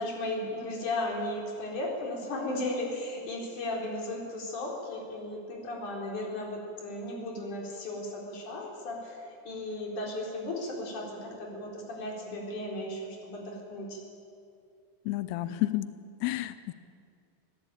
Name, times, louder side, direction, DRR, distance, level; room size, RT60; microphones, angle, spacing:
voice 1, 0.0-14.0, left 1 dB, 40° left, -1 dB, 5.0 m, -35 dB
voice 2, 15.1-15.9 16.2-16.7, left 16 dB, 85° left, 13 dB, 2.3 m, -30 dB
26.5 x 16.0 x 8.9 m, 2.4 s
omnidirectional pair, 5.6 m